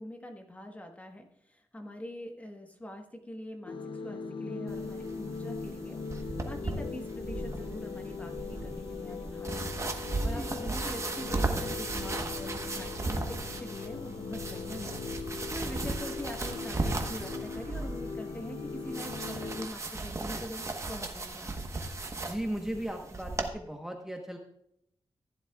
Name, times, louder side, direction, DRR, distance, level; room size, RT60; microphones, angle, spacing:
voice 1, 0.0-15.0 15.5-21.5, equal, 15° left, 3 dB, 1.3 m, -44 dB
sound 1, 3.7-19.7, left 4 dB, 55° left, 0.6 m, -40 dB
sound 2, 4.7-23.5, right 2 dB, 30° right, 1.1 m, -36 dB
voice 2, 10.1-10.5 22.3-24.4, right 1 dB, 5° right, 2 dB, 1.1 m, -37 dB
15.5 x 10.5 x 2.3 m, 0.75 s
wide cardioid pair, 145°, 10 cm